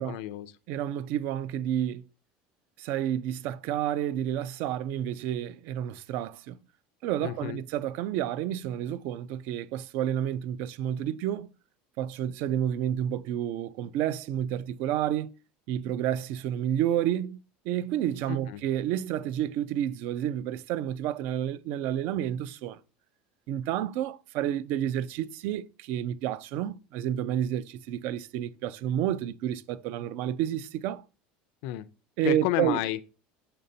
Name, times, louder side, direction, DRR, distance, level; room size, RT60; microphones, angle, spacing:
voice 1, 0.0-0.5 7.2-7.6 18.3-18.6 31.6-31.9 32.2-33.1, left 15 dB, 60° left, 0.4 m, -31 dB
voice 2, 0.7-2.0 2.8-6.6 7.0-11.5 12.0-15.3 15.7-22.8 23.5-31.0 32.2-32.8, right 11 dB, 50° right, 0.4 m, -30 dB
6.7 x 5.2 x 2.7 m
cardioid pair, 170°, 4 cm